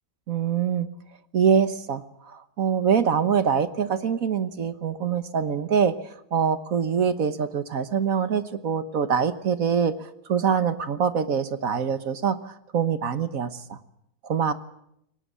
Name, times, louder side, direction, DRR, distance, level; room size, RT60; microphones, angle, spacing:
voice 1, 0.3-0.9 1.3-5.9 6.3-13.8 14.2-14.5, right 7 dB, 60° right, 11 dB, 1.6 m, -24 dB
23.0 x 19.0 x 8.3 m, 0.77 s
omnidirectional pair, 1.7 m